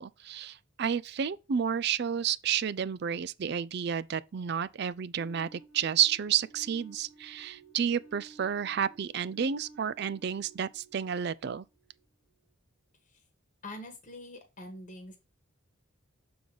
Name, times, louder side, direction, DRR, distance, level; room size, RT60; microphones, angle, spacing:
voice 1, 0.0-11.6, right 8 dB, 50° right, 0.4 m, -31 dB
sound 1, 5.2-11.9, right 3 dB, 75° right, 1.8 m, -55 dB
voice 2, 13.6-15.2, left 1 dB, 35° left, 1.3 m, -45 dB
6.9 x 3.9 x 4.8 m
head